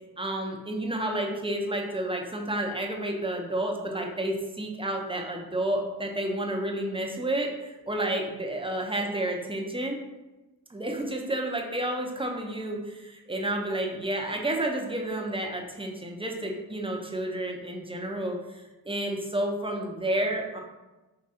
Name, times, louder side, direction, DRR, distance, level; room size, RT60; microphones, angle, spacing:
voice 1, 0.2-10.0 10.7-20.6, right 1 dB, 15° right, 1 dB, 0.7 m, -30 dB
4.8 x 3.2 x 2.8 m, 1.1 s
wide cardioid pair, 70°, 37 cm